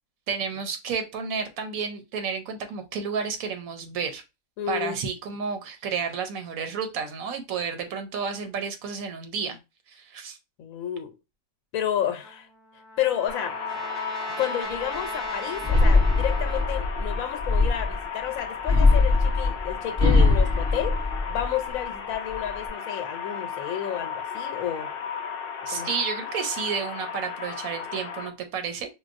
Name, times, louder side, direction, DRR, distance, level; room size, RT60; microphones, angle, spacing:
voice 1, 0.3-4.2 4.7-9.6 9.9-10.4 25.7-28.9, right 6 dB, 85° right, 1.0 m, -31 dB
voice 2, 4.6-5.0 10.6-11.1 11.7-12.5 13.0-13.6 14.4-21.0 21.3-24.9 25.7-25.9, left 10 dB, 80° left, 1.1 m, -31 dB
Trumpet, 12.2-16.9, right 1 dB, 20° left, 0.5 m, -38 dB
sound 1, 13.3-28.3, left 7 dB, 55° left, 0.7 m, -35 dB
sound 2, 15.6-18.0 18.6-21.7 22.1-22.7, left 3 dB, 20° right, 0.9 m, -21 dB
4.6 x 2.2 x 2.5 m
omnidirectional pair, 1.4 m